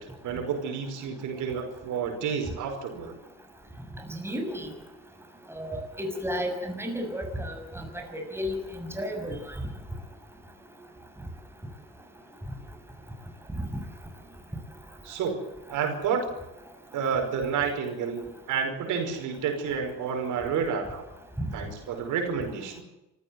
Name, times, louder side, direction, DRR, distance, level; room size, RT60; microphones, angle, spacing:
voice 1, 0.2-3.1 15.0-15.4 15.7-16.3 16.9-21.1 21.5-22.8, right 6 dB, 85° right, 4 dB, 5.4 m, -30 dB
voice 2, 4.1-4.7 5.5-9.4, equal, 10° right, 4 dB, 6.6 m, -33 dB
25.0 x 15.0 x 7.9 m, 0.95 s
cardioid pair, 90°, 30 cm